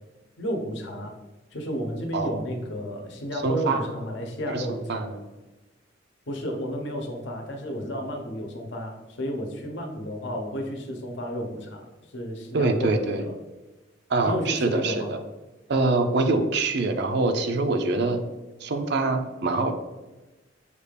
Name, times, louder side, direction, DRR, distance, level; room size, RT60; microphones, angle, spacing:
voice 1, 0.4-1.1 1.5-5.1 6.3-11.9 12.1-13.3 14.2-15.1, equal, 65° left, 2 dB, 0.8 m, -32 dB
voice 2, 3.3-3.9 4.5-5.2 12.5-13.2 14.1-15.2 15.7-18.2 18.6-19.7, right 3 dB, 60° right, 6 dB, 0.5 m, -25 dB
6.6 x 2.4 x 3.3 m, 1.1 s
head